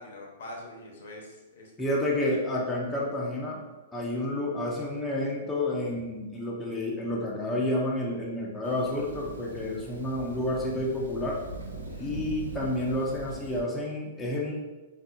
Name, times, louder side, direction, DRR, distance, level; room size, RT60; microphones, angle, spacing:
voice 1, 0.0-1.7 2.1-2.4 11.9-12.2, left 1 dB, 65° left, -1 dB, 0.7 m, -44 dB
voice 2, 1.8-3.6 3.9-11.4 12.0-14.5, left 1 dB, 10° left, -4 dB, 0.6 m, -30 dB
Thunder, 8.6-13.6, right 2 dB, 85° right, 0.5 m, -41 dB
4.3 x 2.0 x 2.6 m, 1.2 s
figure-of-eight pair, 110°, 0 cm